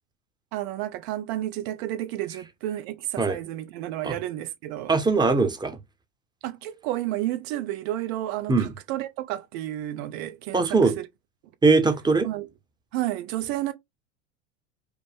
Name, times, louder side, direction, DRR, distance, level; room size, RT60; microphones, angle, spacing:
voice 1, 0.5-5.0 6.4-11.1 12.2-12.5 12.9-13.7, right 14 dB, 55° right, 0.8 m, -31 dB
voice 2, 4.9-5.8 8.5-8.7 10.5-10.9 11.6-12.3, right 4 dB, 10° right, 0.8 m, -21 dB
5.1 x 2.1 x 3.2 m
hypercardioid pair, 95°, 38 cm